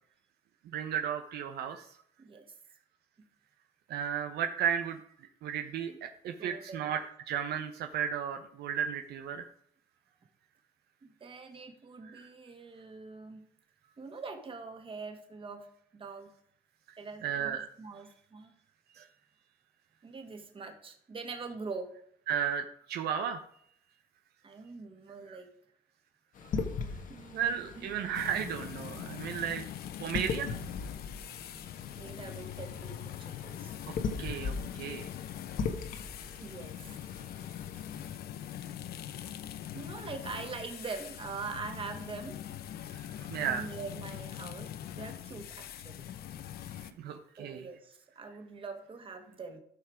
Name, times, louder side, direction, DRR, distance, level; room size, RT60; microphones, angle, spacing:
voice 1, 0.7-1.8 3.9-5.0 5.4-7.0 7.3-9.4 12.1-12.3 17.2-17.7 19.0-19.1 22.3-23.4 27.3-29.6 30.0-30.5 34.2-35.0 43.3-43.6 47.0-47.7, right 8 dB, 70° right, 6 dB, 0.9 m, -34 dB
voice 2, 6.4-6.9 11.0-13.4 14.0-15.7 15.9-16.3 17.0-18.5 20.0-21.9 24.4-25.5 27.1-27.9 32.0-33.7 36.4-37.4 39.0-39.3 39.7-42.4 43.4-46.1 47.4-49.6, right 4 dB, 30° right, 5 dB, 2.1 m, -43 dB
sound 1, 26.3-38.1, left 5 dB, 50° left, 1.5 m, -40 dB
sound 2, 28.1-46.9, left 11 dB, 65° left, 0.8 m, -43 dB
13.0 x 5.7 x 5.0 m, 0.67 s
cardioid pair, 110°, 17 cm